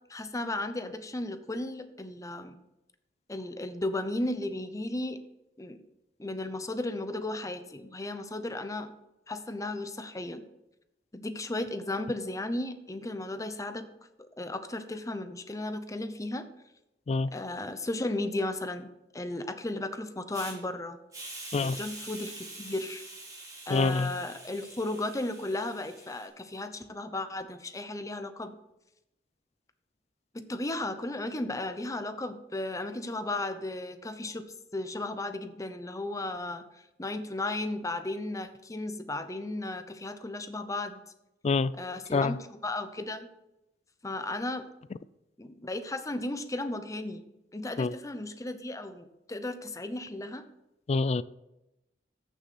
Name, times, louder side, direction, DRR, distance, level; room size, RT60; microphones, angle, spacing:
voice 1, 0.1-2.6 3.3-5.2 5.6-5.8 6.2-8.9 9.3-10.4 11.1-13.9 14.4-16.5 17.3-21.0 21.6-23.0 23.7-28.6 30.3-34.5 34.7-36.6 37.0-41.0 41.8-43.3 44.0-44.7 45.4-47.3 47.5-50.4, left 2 dB, 20° left, 0.8 m, -35 dB
Hiss, 20.3-20.5 21.1-26.3, right 2 dB, 20° right, 4.0 m, -45 dB
voice 2, 23.7-24.1 41.4-41.7 42.1-42.4 47.8-48.0 50.9-51.2, left 4 dB, 40° left, 0.3 m, -26 dB
14.0 x 6.4 x 4.2 m
head